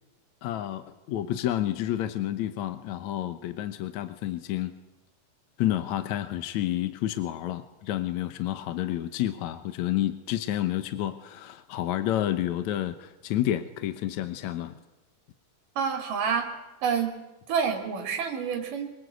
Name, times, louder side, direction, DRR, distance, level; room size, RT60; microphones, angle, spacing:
voice 1, 0.4-4.7 5.6-14.8, left 13 dB, 70° left, 10 dB, 2.2 m, -30 dB
voice 2, 15.8-16.5 16.8-17.1 17.5-18.9, right 6 dB, 85° right, 5 dB, 4.2 m, -28 dB
25.0 x 23.0 x 8.2 m, 1.0 s
omnidirectional pair, 3.7 m